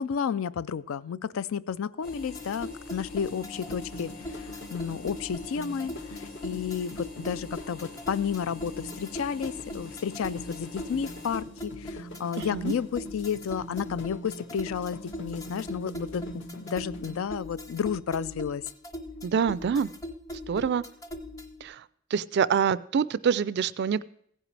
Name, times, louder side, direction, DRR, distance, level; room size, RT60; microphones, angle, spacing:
voice 1, 0.0-18.6, left 7 dB, 75° left, 18 dB, 0.4 m, -32 dB
sound 1, 2.0-11.4, left 4 dB, 45° left, 1.5 m, -46 dB
sound 2, 2.1-21.6, left 1 dB, 15° left, 0.7 m, -40 dB
sound 3, 3.2-17.2, equal, 60° left, 1.2 m, -44 dB
voice 2, 12.4-12.7 19.2-19.9 20.5-20.8 21.6-21.8 22.1-24.0, right 7 dB, 55° right, 18 dB, 0.3 m, -26 dB
16.0 x 10.0 x 3.3 m, 0.70 s
head